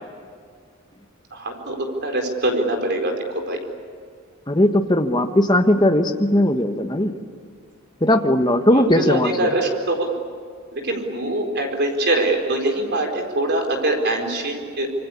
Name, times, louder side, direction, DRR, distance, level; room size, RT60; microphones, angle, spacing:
voice 1, 1.3-1.8 2.0-3.1 3.5-3.6 8.7-10.1 10.7-14.9, right 1 dB, 50° right, 3 dB, 4.5 m, -23 dB
voice 2, 4.5-7.2 8.0-9.5, left 1 dB, 20° left, 6 dB, 1.3 m, -18 dB
26.5 x 24.5 x 8.6 m, 2.1 s
head